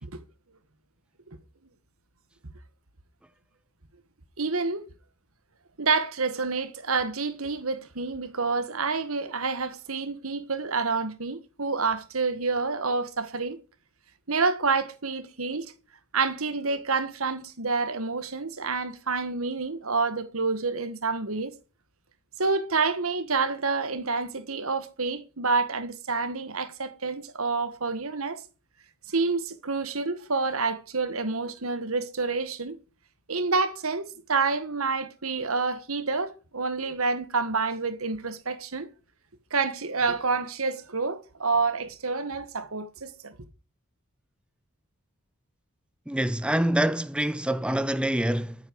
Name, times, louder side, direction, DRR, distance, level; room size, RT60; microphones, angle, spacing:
voice 1, 4.4-4.8 5.8-13.6 14.3-15.7 16.1-21.5 22.4-28.4 29.1-32.8 33.3-38.9 39.5-43.3, right 4 dB, 80° right, 1.6 m, -28 dB
voice 2, 46.1-48.6, right 1 dB, 5° right, 0.6 m, -25 dB
13.5 x 8.9 x 4.7 m
head